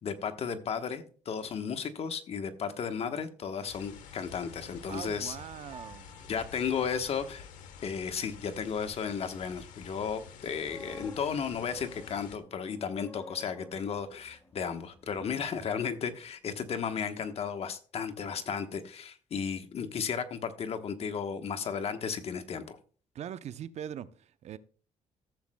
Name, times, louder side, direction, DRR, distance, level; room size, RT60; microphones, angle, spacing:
voice 1, 0.0-5.4 6.3-7.5 7.8-22.8, left 6 dB, 50° left, 1.1 m, -34 dB
sound 1, 3.7-12.4, left 7 dB, 80° left, 1.1 m, -49 dB
voice 2, 4.9-6.1 23.1-24.6, right 9 dB, 60° right, 0.6 m, -41 dB
Piano, 5.7-8.2, right 4 dB, 25° right, 1.9 m, -55 dB
sound 2, 10.4-16.3 16.6-16.8, left 3 dB, 20° left, 1.4 m, -52 dB
15.0 x 7.3 x 2.2 m
cardioid pair, 90°, 13 cm